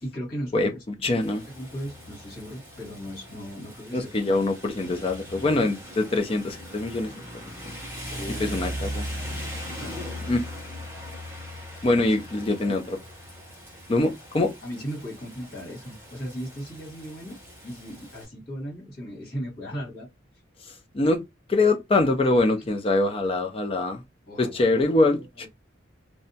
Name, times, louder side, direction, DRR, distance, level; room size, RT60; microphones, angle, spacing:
voice 1, 0.0-0.8 1.3-4.4 4.8-5.0 8.1-8.8 9.3-10.2 11.9-12.1 12.6-12.8 14.6-17.4 17.6-20.1 22.5-22.7 24.3-25.5, equal, 50° left, 1.5 m, -38 dB
voice 2, 1.0-1.4 3.9-7.1 7.4-7.5 8.4-9.1 10.3-10.5 11.8-13.0 13.9-14.5 20.9-21.2 21.5-24.0 24.4-25.5, left 2 dB, 30° left, 0.4 m, -23 dB
Rain, 1.2-18.2, equal, 15° right, 0.9 m, -39 dB
2.6 x 2.1 x 2.7 m
head